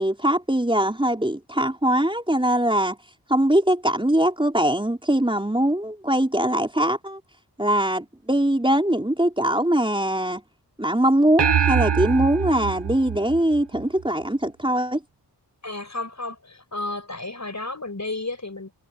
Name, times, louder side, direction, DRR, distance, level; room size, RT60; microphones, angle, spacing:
voice 1, 0.0-3.0 3.3-7.2 7.6-10.4 10.8-15.0, right 1 dB, 10° right, 4.4 m, -22 dB
sound 1, 11.4-14.0, right 7 dB, 90° right, 1.2 m, -24 dB
voice 2, 15.6-18.7, left 2 dB, 45° left, 6.0 m, -32 dB
wide cardioid pair, 50°, 40 cm